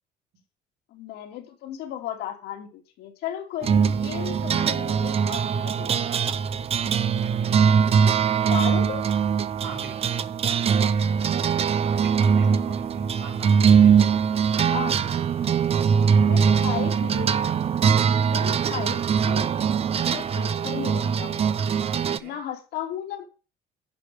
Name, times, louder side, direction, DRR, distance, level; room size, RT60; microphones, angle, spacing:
voice 1, 0.9-5.9 8.3-9.1 12.5-12.6 14.4-15.0 16.3-17.4 18.3-19.7 20.1-21.5 22.2-23.3, left 10 dB, 85° left, 3 dB, 2.5 m, -35 dB
sound 1, 3.6-22.2, right 7 dB, 35° right, 0.6 m, -22 dB
voice 2, 7.2-7.5 9.6-10.2 12.0-14.1 22.1-22.3, right 4 dB, 70° right, 0 dB, 4.2 m, -42 dB
10.5 x 4.7 x 6.4 m, 0.33 s
cardioid pair, 110°, 17 cm